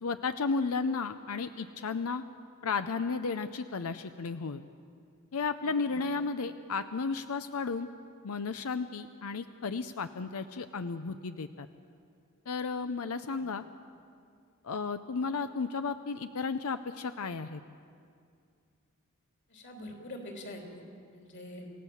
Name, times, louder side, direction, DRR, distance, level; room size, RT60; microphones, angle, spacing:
voice 1, 0.0-2.2 2.6-4.6 5.3-7.9 8.2-11.7 12.5-13.6 14.6-17.6, left 4 dB, 80° left, 10 dB, 0.6 m, -33 dB
voice 2, 19.5-20.8 21.1-21.7, left 1 dB, 55° left, 1 dB, 3.4 m, -45 dB
27.5 x 16.5 x 7.1 m, 2.3 s
head